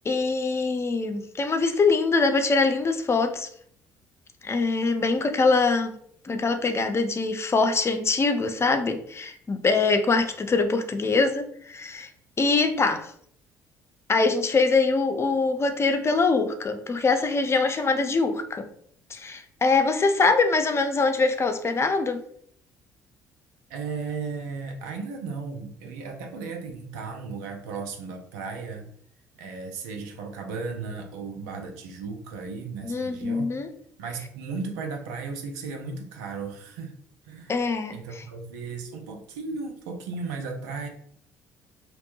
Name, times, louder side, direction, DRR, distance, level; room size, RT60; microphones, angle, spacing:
voice 1, 0.1-3.5 4.4-5.9 6.2-12.1 12.4-13.1 14.1-18.7 19.1-22.2 32.8-33.7 37.5-38.0, left 4 dB, 30° left, 8 dB, 0.5 m, -23 dB
voice 2, 23.7-28.9 29.4-33.5 34.0-36.9 37.2-37.5 37.9-40.9, right 4 dB, 80° right, 3 dB, 0.5 m, -35 dB
2.9 x 2.1 x 2.9 m, 0.64 s
hypercardioid pair, 50°, 9 cm